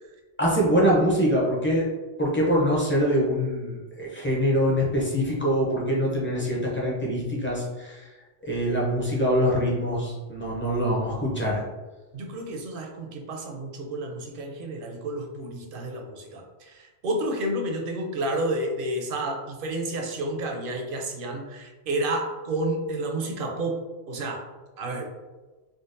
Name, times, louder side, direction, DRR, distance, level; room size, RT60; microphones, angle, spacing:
voice 1, 0.4-1.9 2.2-8.1 8.4-11.6, equal, 15° left, -5 dB, 0.5 m, -24 dB
voice 2, 12.1-24.4 24.8-25.1, right 1 dB, 60° right, 2 dB, 0.6 m, -30 dB
3.7 x 2.2 x 2.5 m, 1.2 s
omnidirectional pair, 1.2 m